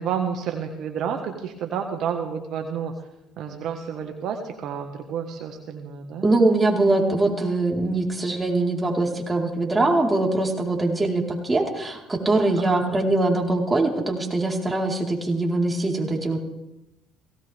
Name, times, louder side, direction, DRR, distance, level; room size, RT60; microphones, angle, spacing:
voice 1, 0.0-2.9 3.4-6.2 12.6-13.0, right 7 dB, 65° right, 4 dB, 1.7 m, -30 dB
voice 2, 6.2-16.4, right 2 dB, 20° right, -1 dB, 4.5 m, -22 dB
18.5 x 17.5 x 3.6 m, 0.90 s
supercardioid pair, 70°, 0 cm